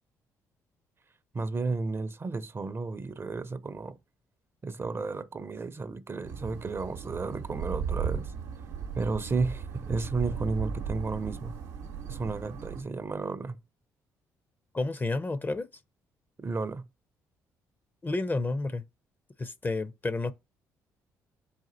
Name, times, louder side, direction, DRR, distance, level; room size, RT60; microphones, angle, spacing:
voice 1, 1.3-4.0 4.6-8.3 9.0-11.6 12.1-13.6 16.4-16.8, right 3 dB, 30° right, 0.5 m, -33 dB
sound 1, 6.2-12.8, right 7 dB, 85° right, 0.7 m, -36 dB
voice 2, 14.7-15.7 18.0-18.8 19.4-20.3, left 2 dB, 25° left, 0.5 m, -30 dB
4.2 x 2.3 x 3.9 m
hypercardioid pair, 50°, 8 cm